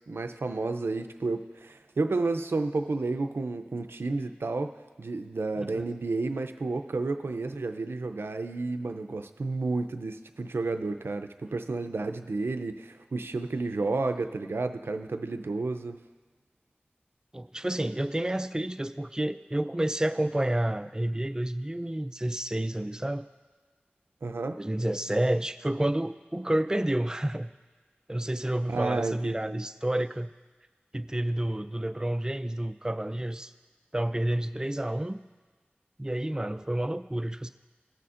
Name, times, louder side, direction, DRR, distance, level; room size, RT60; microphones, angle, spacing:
voice 1, 0.1-4.7 5.0-16.0 24.2-24.6 28.7-29.6, right 3 dB, 85° right, 7 dB, 0.4 m, -31 dB
voice 2, 17.3-23.3 24.6-27.5 28.1-30.3 30.9-33.5 33.9-35.2 36.0-37.5, right 1 dB, 20° right, 10 dB, 0.4 m, -29 dB
18.0 x 6.8 x 2.5 m, 1.4 s
wide cardioid pair, 55°, 4 cm